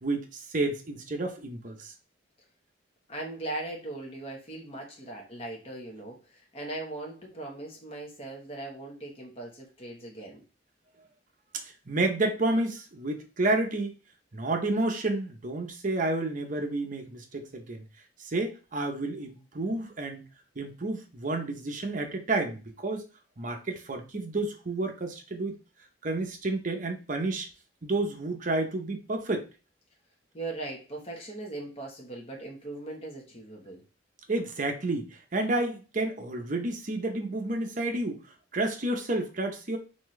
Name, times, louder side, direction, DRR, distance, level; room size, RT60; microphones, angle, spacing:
voice 1, 0.0-1.9 11.6-14.0 14.3-17.8 18.2-20.2 20.6-23.1 23.4-25.6 26.0-27.5 27.8-29.5 34.3-38.2 38.5-39.8, right 2 dB, 45° right, 4 dB, 0.8 m, -30 dB
voice 2, 3.1-10.4 30.3-33.8, right 2 dB, 35° left, -1 dB, 1.2 m, -39 dB
4.3 x 3.4 x 3.2 m, 0.32 s
head